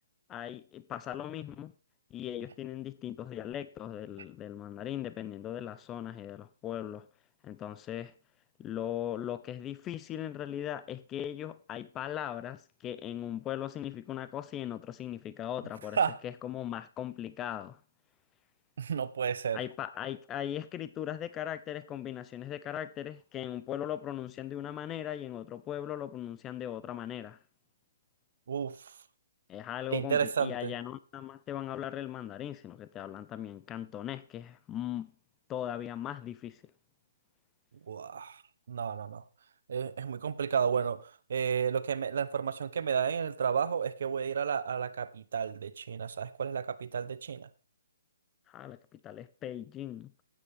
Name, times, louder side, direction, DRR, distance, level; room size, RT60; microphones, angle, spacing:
voice 1, 0.3-1.7 2.1-7.1 7.4-8.1 8.6-16.0 16.2-17.8 19.5-27.4 29.5-35.1 35.5-36.6 48.5-50.1, left 11 dB, 15° left, 0.4 m, -39 dB
voice 2, 18.8-19.6 28.5-28.8 29.9-30.7 37.9-38.4 38.7-39.2 39.7-47.5, right 7 dB, 65° right, 0.8 m, -32 dB
14.0 x 9.0 x 3.5 m
hypercardioid pair, 160°, 0 cm